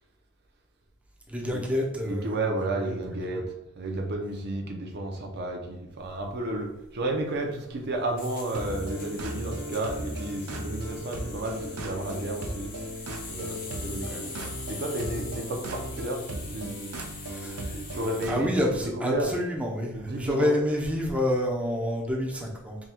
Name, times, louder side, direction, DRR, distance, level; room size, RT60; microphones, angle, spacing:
voice 1, 1.3-2.4 2.6-3.4 17.3-17.8 18.3-22.8, left 1 dB, 5° right, -1 dB, 0.6 m, -28 dB
voice 2, 2.0-3.4 3.8-12.7 13.3-16.7 17.9-19.3 19.9-20.5, right 1 dB, 50° right, 1 dB, 0.7 m, -32 dB
sound 1, 6.0-18.3, left 4 dB, 40° left, 0.6 m, -44 dB
sound 2, 8.5-18.9, right 1 dB, 85° right, 0.6 m, -37 dB
3.7 x 2.3 x 4.3 m, 0.84 s
head